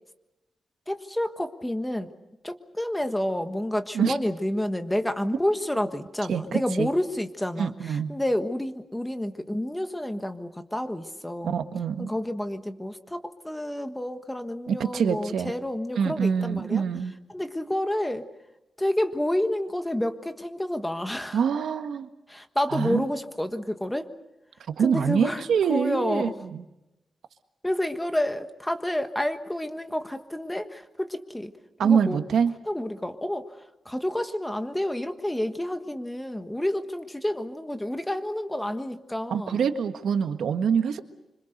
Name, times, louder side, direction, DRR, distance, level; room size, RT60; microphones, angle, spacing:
voice 1, 0.9-2.1 2.4-11.6 12.0-16.8 17.3-18.3 18.8-21.4 22.3-24.1 24.8-26.3 27.6-31.5 31.8-32.2 32.7-39.7, left 1 dB, 5° left, 7 dB, 1.4 m, -29 dB
voice 2, 6.3-6.9 7.6-8.1 11.4-12.1 14.7-15.5 16.0-17.1 21.3-22.1 22.7-23.0 24.7-26.6 31.8-32.5 39.3-41.0, right 7 dB, 80° right, 8 dB, 1.6 m, -25 dB
26.0 x 26.0 x 6.7 m, 0.95 s
wide cardioid pair, 155°, 0 cm